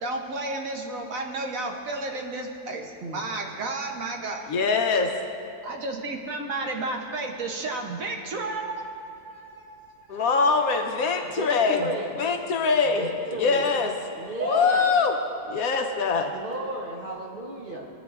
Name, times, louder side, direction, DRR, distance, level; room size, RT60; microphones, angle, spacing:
voice 1, 0.0-4.6 5.6-10.3 14.4-14.7 16.2-16.5, right 2 dB, 60° right, 2 dB, 1.1 m, -33 dB
voice 2, 4.5-5.1 10.1-11.9 12.2-13.1 13.4-13.9 14.5-15.1 15.5-16.3, left 4 dB, 65° left, 4 dB, 1.0 m, -23 dB
voice 3, 11.4-12.1 12.9-13.7 14.2-14.9 16.3-17.9, right 1 dB, 45° right, -2 dB, 0.8 m, -33 dB
18.0 x 9.2 x 2.4 m, 2.8 s
omnidirectional pair, 1.8 m